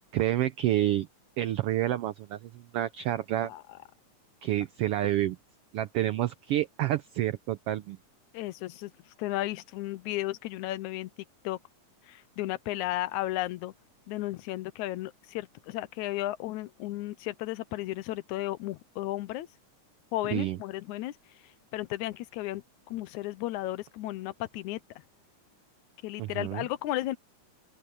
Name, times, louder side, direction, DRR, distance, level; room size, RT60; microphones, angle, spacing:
voice 1, 0.1-1.1 1.4-3.5 4.4-5.4 5.7-8.0 20.3-20.6 26.2-26.6, right 13 dB, 85° right, 1.3 m, -29 dB
voice 2, 8.3-8.9 9.2-11.1 11.4-11.6 12.1-13.7 14.1-19.5 20.1-21.1 21.7-24.8 26.0-27.2, left 16 dB, 85° left, 2.1 m, -34 dB
open air
omnidirectional pair, 3.4 m